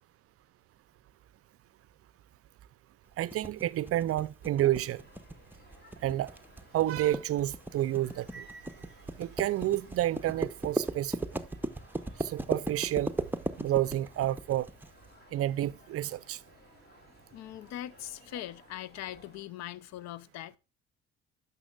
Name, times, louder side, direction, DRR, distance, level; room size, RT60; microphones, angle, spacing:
voice 1, 3.2-5.0 6.0-6.3 6.7-8.5 9.2-11.4 12.2-13.1 13.6-14.7 15.3-16.4, right 13 dB, 50° right, 0.5 m, -30 dB
sound 1, 3.3-14.9, right 2 dB, 5° right, 0.7 m, -36 dB
sound 2, 4.4-19.4, equal, 30° left, 2.8 m, -57 dB
voice 2, 17.3-20.6, left 13 dB, 60° left, 0.6 m, -41 dB
11.0 x 6.6 x 2.4 m
hypercardioid pair, 55°, 31 cm